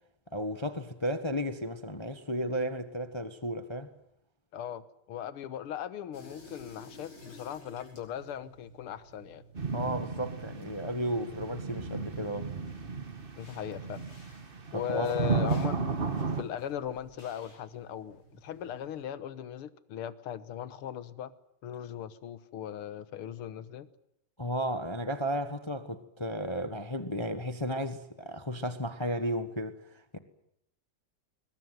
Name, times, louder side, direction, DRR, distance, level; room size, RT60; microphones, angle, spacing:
voice 1, 0.3-3.9 9.7-12.5 14.7-15.3 24.4-30.2, equal, 15° left, 1.0 m, -34 dB
voice 2, 4.5-9.4 13.4-14.0 14.7-16.0 16.4-21.3 21.6-23.9, left 10 dB, 85° left, 2.1 m, -38 dB
sound 1, 6.1-19.0, equal, 70° left, 6.4 m, -55 dB
sound 2, 9.5-16.4, right 4 dB, 30° right, 1.5 m, -34 dB
22.5 x 21.0 x 9.3 m
omnidirectional pair, 2.4 m